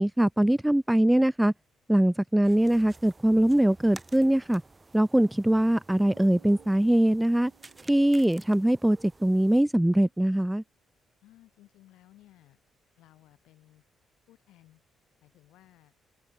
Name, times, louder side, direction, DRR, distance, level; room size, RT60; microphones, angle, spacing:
voice 1, 0.0-1.5 1.9-4.6 4.9-7.5 7.9-10.6, right 1 dB, 5° right, 0.3 m, -22 dB
sound 1, 2.4-9.6, right 3 dB, 25° right, 7.3 m, -52 dB
sound 2, 6.0-9.9, right 25 dB, 70° right, 6.0 m, -60 dB
voice 2, 11.2-12.6 13.0-13.8 14.3-14.8 15.2-15.9, left 15 dB, 65° left, 5.2 m, -58 dB
figure-of-eight pair, 40°, 0 cm